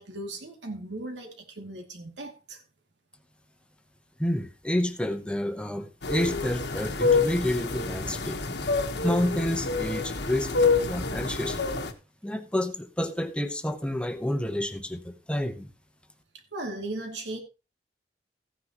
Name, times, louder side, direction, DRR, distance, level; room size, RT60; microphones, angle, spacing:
voice 1, 0.0-2.6 16.5-17.4, right 2 dB, 90° right, 2.6 m, -37 dB
voice 2, 4.2-8.4 9.0-11.7 12.2-15.7, left 1 dB, 5° left, 0.9 m, -29 dB
sound 1, 6.0-11.9, left 4 dB, 70° left, 1.3 m, -27 dB
15.0 x 9.6 x 3.0 m
head